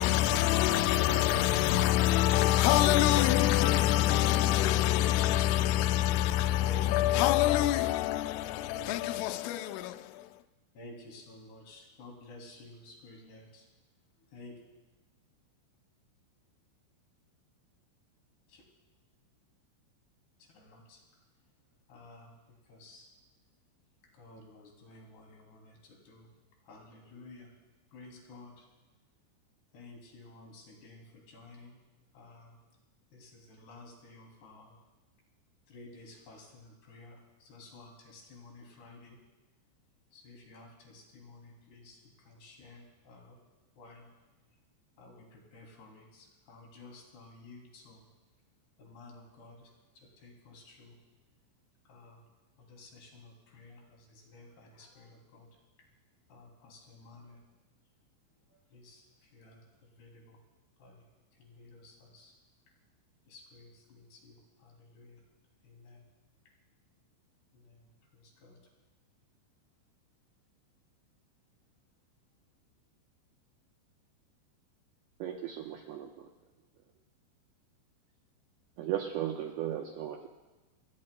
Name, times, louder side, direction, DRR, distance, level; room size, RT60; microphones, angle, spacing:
voice 1, 0.0-10.3, left 13 dB, 90° left, 3.2 m, -26 dB
voice 2, 6.6-7.2 8.7-9.3 10.7-13.6 14.3-14.6 18.5-18.6 20.5-21.0 21.9-22.3 22.7-23.1 24.1-26.3 26.7-27.5 27.9-28.6 29.7-31.8 32.1-32.6 33.1-34.8 35.7-39.2 40.1-43.4 43.8-44.1 45.0-48.0 48.8-49.7 50.2-51.0 51.9-52.2 52.7-55.5 56.3-57.4 58.7-59.0 59.3-59.6 60.0-60.4 60.8-61.0 61.4-62.3 63.3-65.2 65.6-66.0 67.5-67.8 68.1-68.6, left 2 dB, 60° left, 4.7 m, -53 dB
voice 3, 75.2-76.3 78.8-80.3, right 11 dB, 80° right, 2.3 m, -36 dB
29.5 x 19.5 x 2.2 m
omnidirectional pair, 5.6 m